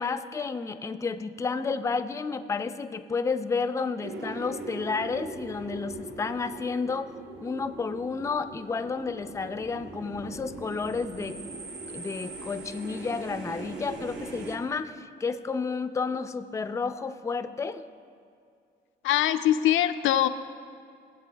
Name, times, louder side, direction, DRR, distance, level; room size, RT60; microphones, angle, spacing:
voice 1, 0.0-7.1 7.4-11.4 11.9-17.8, left 4 dB, 15° left, 10 dB, 0.4 m, -31 dB
sound 1, 4.0-14.6, right 3 dB, 70° right, 1.1 m, -41 dB
voice 2, 19.0-20.3, left 12 dB, 80° left, 11 dB, 0.4 m, -22 dB
17.5 x 7.6 x 2.3 m, 2.3 s
cardioid pair, 90°, 20 cm